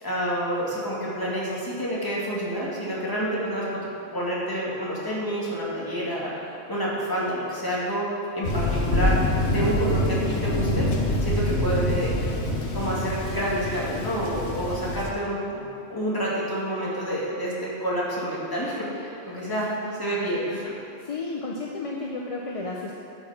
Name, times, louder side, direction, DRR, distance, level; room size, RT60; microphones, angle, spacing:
voice 1, 0.0-3.8 4.1-8.1 8.3-9.2 9.5-10.9 11.2-12.2 12.7-15.6 15.9-19.7 20.0-20.7, right 1 dB, 20° left, -7 dB, 2.6 m, -28 dB
Thunder, 8.4-15.1, left 1 dB, 70° left, 1.4 m, -25 dB
voice 2, 19.5-20.2 21.0-22.9, left 3 dB, 35° left, -1 dB, 0.7 m, -33 dB
12.5 x 6.4 x 6.0 m, 2.8 s
omnidirectional pair, 1.2 m